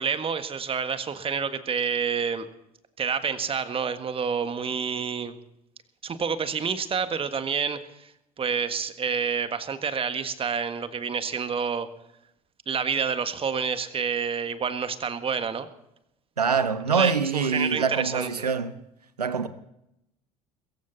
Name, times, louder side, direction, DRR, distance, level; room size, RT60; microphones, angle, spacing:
voice 1, 0.0-2.5 3.0-5.4 6.0-8.1 8.4-11.9 12.7-15.7 16.9-18.5, right 6 dB, 30° right, 1.6 m, -28 dB
voice 2, 16.4-18.7 19.2-19.5, right 5 dB, 85° right, 1.0 m, -25 dB
22.5 x 14.5 x 4.1 m
figure-of-eight pair, 65°, 20 cm